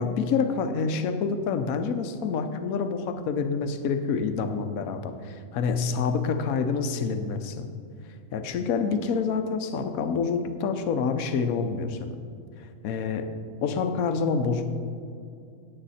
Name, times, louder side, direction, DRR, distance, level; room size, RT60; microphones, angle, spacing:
voice 1, 0.0-7.7 8.3-12.2 12.6-13.3 13.6-14.7, left 5 dB, 75° left, 8 dB, 1.2 m, -27 dB
17.5 x 7.8 x 4.2 m, 2.4 s
omnidirectional pair, 1.5 m